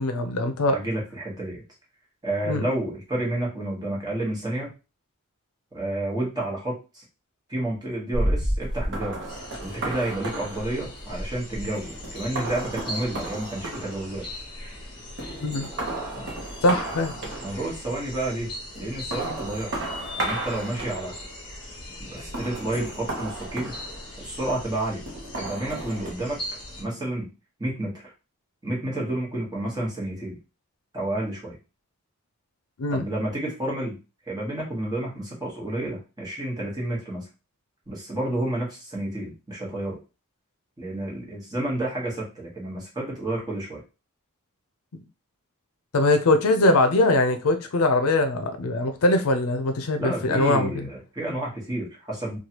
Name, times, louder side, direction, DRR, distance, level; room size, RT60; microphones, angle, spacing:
voice 1, 0.0-0.8 2.5-2.6 15.4-15.7 16.6-17.1 32.8-33.1 45.9-50.9, left 2 dB, 70° left, 0.5 m, -22 dB
voice 2, 0.6-1.6 2.2-4.7 5.7-7.0 7.5-9.3 9.6-14.2 16.1-16.3 17.4-18.5 18.8-19.9 20.2-21.1 22.0-23.8 24.2-25.0 25.4-26.4 26.8-27.3 27.6-27.9 28.6-30.4 30.9-31.6 32.9-34.0 34.2-37.3 37.9-40.0 40.8-43.8 50.0-52.4, right 1 dB, 20° right, 1.2 m, -30 dB
sound 1, 8.1-14.8 15.2-17.9 18.7-21.4 22.2-24.4 25.1-26.1, right 1 dB, 55° right, 0.8 m, -33 dB
sound 2, 9.3-26.8, left 1 dB, 25° left, 1.0 m, -40 dB
3.1 x 2.3 x 2.8 m
head